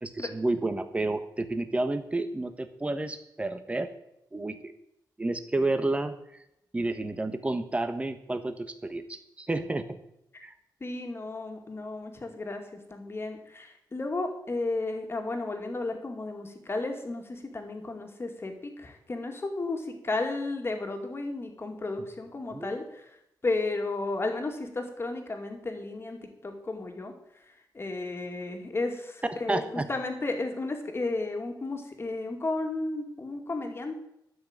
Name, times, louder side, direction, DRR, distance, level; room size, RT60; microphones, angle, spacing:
voice 1, 0.0-3.9 4.3-4.7 5.2-6.1 6.7-9.9 10.4-10.5 22.5-22.7 29.5-29.9, right 2 dB, 15° right, 9 dB, 1.2 m, -30 dB
voice 2, 10.8-23.2 23.4-34.0, left 2 dB, 30° left, 4 dB, 2.3 m, -33 dB
12.5 x 6.2 x 8.9 m, 0.79 s
wide cardioid pair, 125°, 8 cm